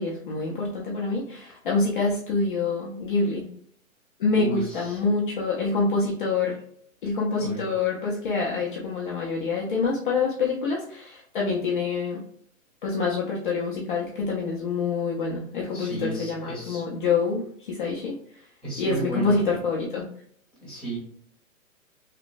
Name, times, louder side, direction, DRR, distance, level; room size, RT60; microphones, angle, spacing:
voice 1, 0.0-3.4 4.2-6.6 7.0-12.2 12.8-18.1 18.8-20.0, left 4 dB, 40° left, -4 dB, 0.5 m, -26 dB
voice 2, 4.3-5.1 7.4-7.7 15.7-16.8 18.6-19.5 20.6-21.0, right 2 dB, ahead, -8 dB, 0.8 m, -34 dB
3.0 x 2.1 x 2.5 m, 0.63 s
hypercardioid pair, 150°, 42 cm